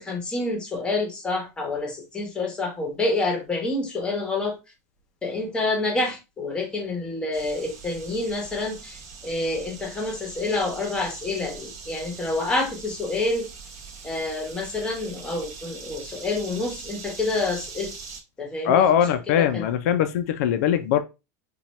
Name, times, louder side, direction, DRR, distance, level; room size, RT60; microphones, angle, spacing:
voice 1, 0.0-4.6 5.2-13.5 14.0-17.9 18.4-19.0 19.3-19.6, left 2 dB, 10° left, 0.9 m, -28 dB
sound 1, 7.3-18.2, right 5 dB, 40° right, 1.0 m, -42 dB
voice 2, 18.6-21.0, left 9 dB, 70° left, 0.4 m, -21 dB
4.2 x 2.3 x 3.0 m
supercardioid pair, 165°, 9 cm